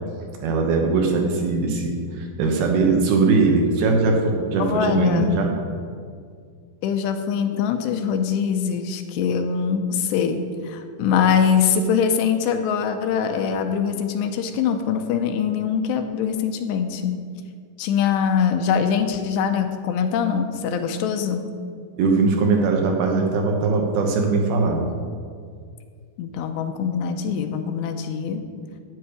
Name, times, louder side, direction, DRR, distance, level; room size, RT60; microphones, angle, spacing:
voice 1, 0.4-5.6 22.0-24.9, right 3 dB, 70° right, 2 dB, 2.6 m, -20 dB
voice 2, 4.6-5.3 6.8-17.2 17.8-21.5 26.2-28.4, left 7 dB, 85° left, 6 dB, 2.8 m, -23 dB
12.5 x 9.2 x 5.0 m, 2.1 s
omnidirectional pair, 5.1 m